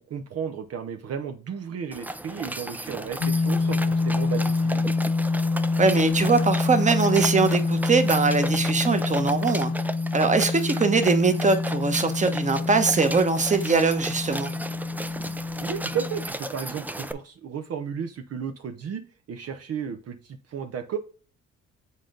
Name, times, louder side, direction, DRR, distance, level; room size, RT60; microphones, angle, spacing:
voice 1, 0.0-4.9 15.6-19.0 19.3-21.0, right 7 dB, 55° right, 0.7 m, -33 dB
sound 1, 1.9-17.1, right 1 dB, 5° right, 0.4 m, -36 dB
sound 2, 3.2-16.3, left 3 dB, 65° left, 1.3 m, -26 dB
voice 2, 5.8-9.7 10.1-14.5, right 4 dB, 25° right, 1.1 m, -22 dB
7.3 x 3.9 x 3.7 m
cardioid pair, 90°, 30 cm